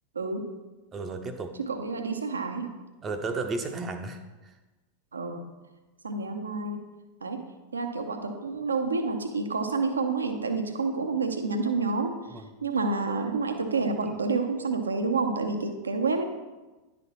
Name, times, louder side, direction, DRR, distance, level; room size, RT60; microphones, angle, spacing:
voice 1, 0.1-0.5 1.7-2.7 5.1-5.5 6.0-6.8 7.2-7.4 7.7-16.2, right 4 dB, 75° right, 6 dB, 0.7 m, -29 dB
voice 2, 0.9-1.5 3.0-4.5 12.3-12.4 14.0-14.2, right 3 dB, 25° right, 6 dB, 0.7 m, -34 dB
10.5 x 4.3 x 4.3 m, 1.2 s
figure-of-eight pair, 90°, 0 cm